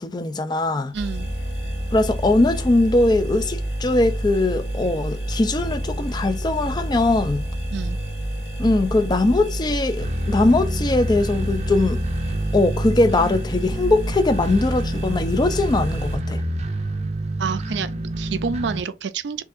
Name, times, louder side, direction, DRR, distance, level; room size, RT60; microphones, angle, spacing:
voice 1, 0.0-0.9 1.9-7.4 8.6-12.0 12.5-16.4, left 2 dB, 25° left, 0.4 m, -21 dB
sound 1, 0.9-16.2, equal, 60° left, 1.7 m, -30 dB
voice 2, 0.9-1.3 7.7-8.0 17.4-19.4, right 5 dB, 85° right, 0.5 m, -28 dB
sound 2, 1.2-18.8, right 1 dB, 35° right, 0.5 m, -30 dB
4.6 x 2.6 x 2.5 m
head